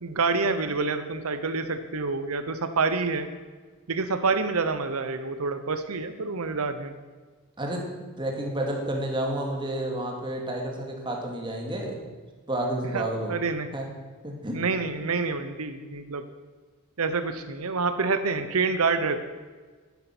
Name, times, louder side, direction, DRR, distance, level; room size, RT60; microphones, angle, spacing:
voice 1, 0.0-3.3 3.9-6.9 12.9-13.7 14.5-16.2 17.0-19.3, right 4 dB, 85° right, 9 dB, 0.9 m, -27 dB
voice 2, 8.2-12.1 12.5-13.4 13.7-13.9 14.2-14.6, right 1 dB, 20° right, 1 dB, 2.3 m, -30 dB
11.5 x 11.0 x 6.1 m, 1.4 s
head